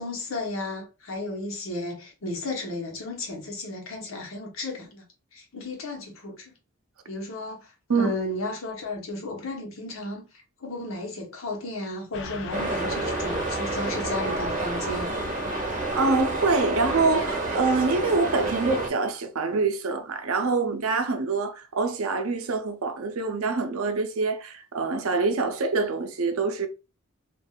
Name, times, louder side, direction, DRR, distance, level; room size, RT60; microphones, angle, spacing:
voice 1, 0.0-5.0 5.3-6.5 7.1-10.3 10.6-15.1, left 2 dB, 75° left, 1.0 m, -34 dB
Car passing by / Truck, 12.1-18.0, left 5 dB, 55° left, 0.4 m, -42 dB
sound 1, 12.5-18.9, right 2 dB, 35° right, 0.9 m, -29 dB
voice 2, 15.5-26.7, right 4 dB, 85° right, 0.5 m, -25 dB
3.4 x 2.4 x 2.3 m
head